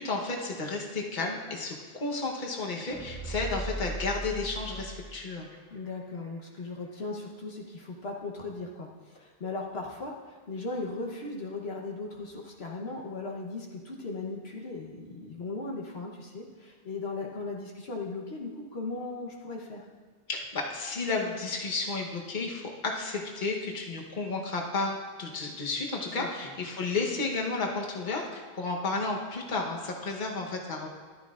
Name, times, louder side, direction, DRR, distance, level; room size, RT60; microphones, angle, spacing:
voice 1, 0.0-5.5 20.3-30.9, left 3 dB, 45° left, 0 dB, 1.2 m, -32 dB
sound 1, 2.6-5.6 5.9-6.0, right 2 dB, 15° left, 0.9 m, -38 dB
voice 2, 5.7-19.9 26.1-26.3, left 3 dB, 70° left, -1 dB, 1.3 m, -37 dB
14.0 x 11.5 x 2.5 m, 1.5 s
omnidirectional pair, 1.1 m